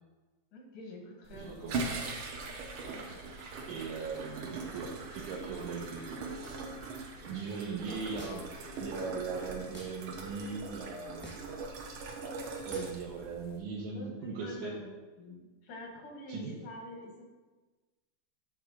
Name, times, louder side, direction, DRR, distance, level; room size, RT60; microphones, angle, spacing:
voice 1, 0.5-2.0 2.9-3.2 13.9-17.2, left 1 dB, 90° left, 0 dB, 3.2 m, -47 dB
sound 1, 1.2-13.6, right 3 dB, 65° right, 1.3 m, -41 dB
voice 2, 1.3-2.0 2.9-3.1 3.7-6.6 7.3-11.4 12.7-14.8 16.3-16.5, right 5 dB, 85° right, -3 dB, 2.4 m, -40 dB
sound 2, 3.0-9.8, left 2 dB, 40° left, 0.7 m, -57 dB
sound 3, 8.2-8.6 9.7-10.0 11.2-11.6 12.7-13.0, right 1 dB, 10° right, 0.6 m, -47 dB
10.0 x 3.5 x 6.5 m, 1.2 s
omnidirectional pair, 3.5 m